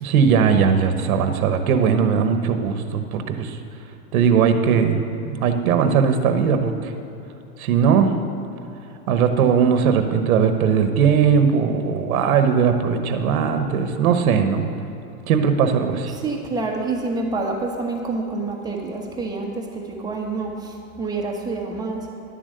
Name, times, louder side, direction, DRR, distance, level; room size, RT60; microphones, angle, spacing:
voice 1, 0.0-3.6 4.1-5.0 5.2-6.9 7.6-8.1 9.1-14.6 15.3-16.1, right 6 dB, 65° right, 7 dB, 1.1 m, -19 dB
voice 2, 16.1-22.1, right 3 dB, 10° right, 0 dB, 1.0 m, -27 dB
11.0 x 7.6 x 6.6 m, 3.0 s
supercardioid pair, 145°, 46 cm